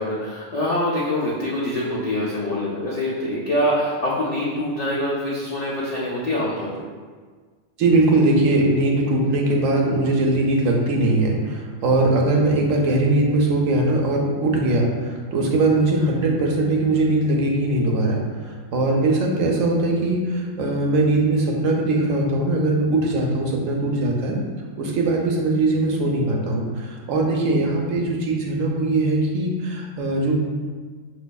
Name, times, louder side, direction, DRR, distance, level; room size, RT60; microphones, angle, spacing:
voice 1, 0.0-6.7, left 1 dB, 70° left, -6 dB, 0.3 m, -24 dB
voice 2, 7.8-24.4 24.8-30.4, right 2 dB, 75° right, 0 dB, 1.0 m, -21 dB
4.9 x 2.5 x 2.2 m, 1.5 s
omnidirectional pair, 1.4 m